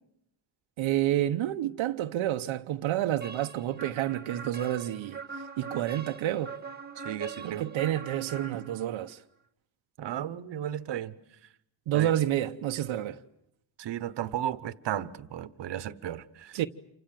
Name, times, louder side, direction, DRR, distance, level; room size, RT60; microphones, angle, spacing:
voice 1, 0.8-5.2 5.6-6.5 7.4-9.2 11.9-13.2 16.5-16.7, right 12 dB, 90° right, 1.0 m, -29 dB
sound 1, 3.2-9.1, right 5 dB, 20° right, 1.6 m, -42 dB
voice 2, 7.0-7.6 10.0-11.2 11.9-12.1 13.8-16.6, right 11 dB, 60° right, 1.2 m, -34 dB
28.5 x 25.5 x 7.7 m
cardioid pair, 130°, 46 cm